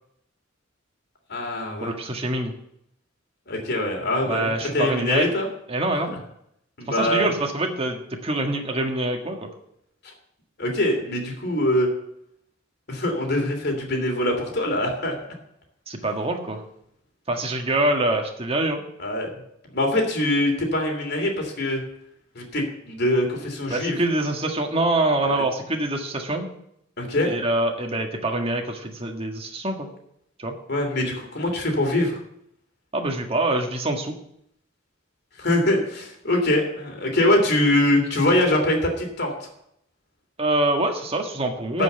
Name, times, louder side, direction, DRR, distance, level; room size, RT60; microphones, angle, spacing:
voice 1, 1.3-1.9 3.5-5.5 6.8-7.3 10.0-10.1 10.6-11.9 12.9-15.1 19.0-19.3 19.7-21.8 22.3-24.0 25.2-25.4 27.0-27.3 30.7-32.2 35.4-39.5 41.7-41.8, left 1 dB, 55° left, 2 dB, 3.0 m, -23 dB
voice 2, 1.8-2.5 4.2-5.3 5.7-6.1 6.9-9.5 15.9-16.6 17.3-18.8 23.7-26.5 27.2-29.9 30.4-30.5 32.9-34.2 40.4-41.8, right 2 dB, 30° right, 2 dB, 1.6 m, -25 dB
12.5 x 5.6 x 8.1 m, 0.74 s
head